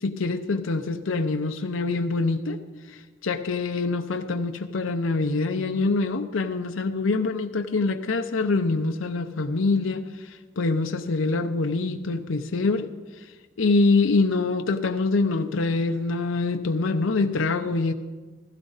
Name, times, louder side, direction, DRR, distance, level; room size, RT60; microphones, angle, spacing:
voice 1, 0.0-2.6 3.2-10.3 10.6-12.9 13.6-17.9, left 3 dB, 90° left, 6 dB, 0.7 m, -25 dB
16.0 x 14.5 x 4.0 m, 1.3 s
head